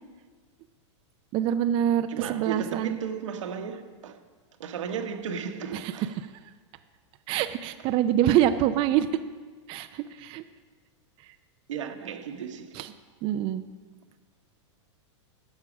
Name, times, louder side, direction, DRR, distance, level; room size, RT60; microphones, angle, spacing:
voice 1, 1.3-3.0 5.7-5.9 7.3-9.1 9.7-10.4 12.7-12.9 13.2-13.6, right 11 dB, 35° right, 0.4 m, -25 dB
voice 2, 2.1-4.2 4.6-6.1 11.7-12.8, right 7 dB, 90° right, 1.3 m, -34 dB
11.0 x 7.4 x 6.1 m
supercardioid pair, 135°, 16 cm